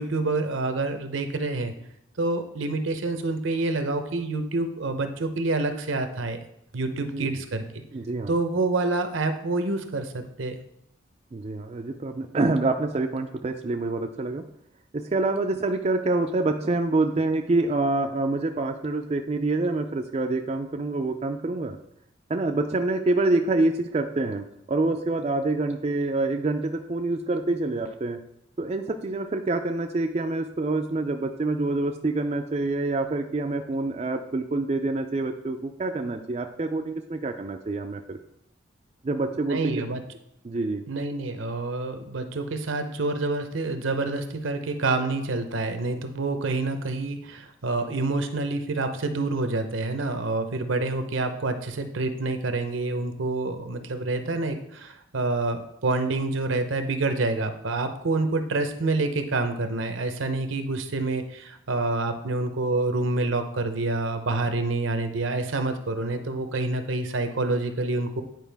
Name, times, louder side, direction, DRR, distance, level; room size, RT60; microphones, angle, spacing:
voice 1, 0.0-1.7 2.2-6.4 6.7-7.6 8.3-10.6 39.5-40.0 40.9-68.2, right 2 dB, 75° right, 7 dB, 0.8 m, -27 dB
voice 2, 7.0-7.3 7.9-8.3 11.3-14.4 14.9-21.8 22.3-28.2 28.6-38.2 39.0-39.8 40.4-40.8, right 2 dB, 30° right, 4 dB, 0.3 m, -26 dB
9.2 x 4.7 x 3.4 m, 0.77 s
head